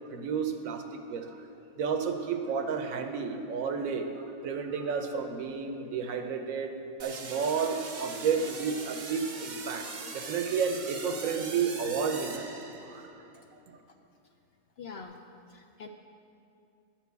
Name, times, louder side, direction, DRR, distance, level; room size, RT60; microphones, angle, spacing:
voice 1, 0.1-0.8 1.1-1.4 1.8-6.7 7.0-12.5 12.8-13.2 13.7-13.8, right 6 dB, 70° right, 6 dB, 1.1 m, -31 dB
sound 1, 7.0-13.2, right 4 dB, 45° right, 0.6 m, -41 dB
voice 2, 14.8-15.2 15.5-15.9, left 5 dB, 70° left, 4 dB, 0.6 m, -44 dB
11.5 x 4.5 x 8.1 m, 2.6 s
omnidirectional pair, 1.5 m